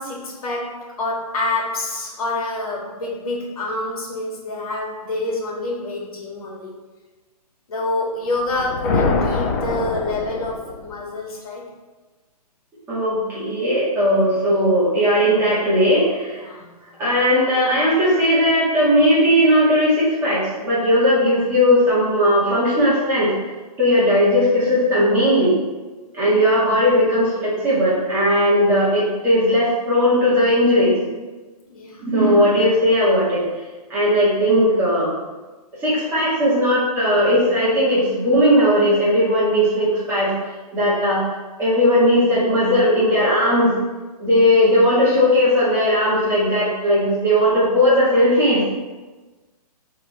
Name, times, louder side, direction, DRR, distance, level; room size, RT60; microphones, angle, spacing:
voice 1, 0.0-6.7 7.7-11.7 16.3-16.8 31.7-32.0, left 2 dB, 65° left, -3 dB, 2.1 m, -27 dB
sound 1, 8.4-11.0, left 3 dB, 25° left, 0.6 m, -24 dB
voice 2, 12.9-16.4 17.0-23.3 23.8-25.6 26.1-31.2 32.0-33.5 33.9-35.1 35.8-40.3 40.7-41.2 41.6-43.8 44.2-48.6, equal, 10° right, -10 dB, 2.0 m, -17 dB
7.8 x 3.9 x 4.2 m, 1.2 s
hypercardioid pair, 165°, 20 cm